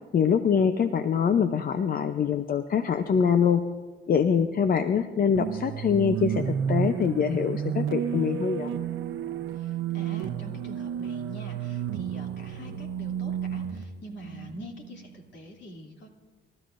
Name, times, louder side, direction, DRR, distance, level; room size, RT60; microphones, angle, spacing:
voice 1, 0.1-3.6 4.1-8.7, left 7 dB, 45° left, 9 dB, 0.7 m, -24 dB
sound 1, 5.3-15.2, right 8 dB, 75° right, 0.8 m, -32 dB
voice 2, 9.5-16.1, equal, 65° left, 0 dB, 2.9 m, -45 dB
28.5 x 13.0 x 2.6 m, 1.5 s
cardioid pair, 90°, 20 cm